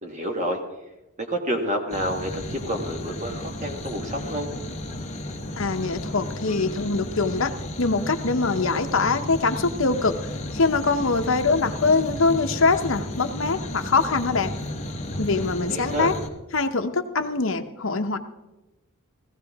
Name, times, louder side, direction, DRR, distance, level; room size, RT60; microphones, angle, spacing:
voice 1, 0.0-0.6 1.2-4.5 15.7-16.1, equal, 35° right, 3 dB, 1.5 m, -29 dB
sound 1, 1.9-16.3, left 1 dB, 30° left, 1.2 m, -33 dB
voice 2, 5.6-10.1 10.5-14.5 15.2-16.1 16.5-18.2, left 3 dB, 60° left, 6 dB, 0.9 m, -23 dB
17.0 x 14.5 x 3.6 m, 1.0 s
head